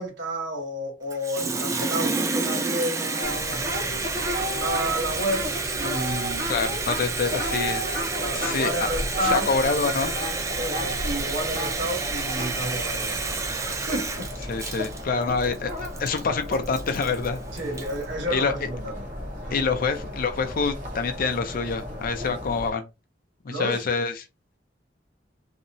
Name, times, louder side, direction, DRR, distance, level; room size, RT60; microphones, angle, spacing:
voice 1, 0.0-3.6 4.6-5.5 5.8-6.5 8.2-9.5 10.6-14.3 17.5-19.1 19.5-19.6 23.5-23.8, right 1 dB, 80° right, 1.1 m, -30 dB
Water tap faucet, 1.1-18.0, right 4 dB, 15° right, 0.3 m, -30 dB
sound 1, 3.2-22.7, equal, 45° right, 1.0 m, -34 dB
voice 2, 6.5-7.8 8.3-8.9 9.2-10.3 14.5-15.7 16.0-17.4 18.3-18.7 19.5-22.9 23.4-24.1, left 4 dB, 50° left, 0.4 m, -26 dB
2.8 x 2.0 x 2.6 m
head